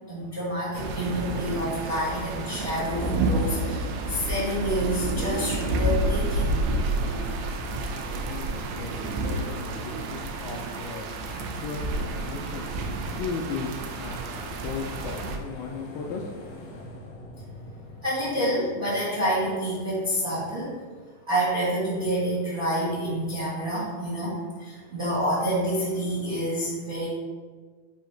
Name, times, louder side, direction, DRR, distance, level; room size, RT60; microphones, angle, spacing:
voice 1, 0.0-6.6 18.0-20.7 21.3-27.1, equal, 70° right, -9 dB, 0.8 m, -28 dB
sound 1, 0.7-15.4, right 2 dB, 85° right, 2.5 m, -29 dB
voice 2, 7.9-16.3, left 4 dB, 80° left, 1 dB, 2.0 m, -37 dB
sound 2, 13.0-20.8, left 1 dB, 65° left, 1.7 m, -46 dB
7.8 x 2.7 x 4.5 m, 1.5 s
omnidirectional pair, 4.3 m